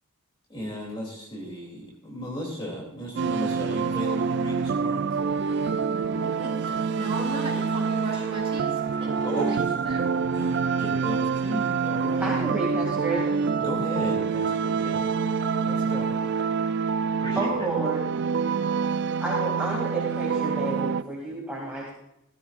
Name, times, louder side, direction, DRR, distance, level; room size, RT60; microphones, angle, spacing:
voice 1, 0.5-5.1 9.2-9.7 10.2-12.4 13.6-15.1 15.6-16.1 17.2-17.7, equal, 25° left, -3 dB, 2.8 m, -35 dB
sound 1, 3.2-21.0, right 5 dB, 50° right, 0.4 m, -26 dB
voice 2, 6.2-8.7 9.0-9.1 9.5-9.6 9.8-10.1, right 2 dB, 25° right, -4 dB, 5.3 m, -36 dB
voice 3, 12.2-13.3 17.4-18.0 19.2-21.9, right 2 dB, 5° right, -6 dB, 2.4 m, -30 dB
17.5 x 14.0 x 2.5 m, 0.83 s
head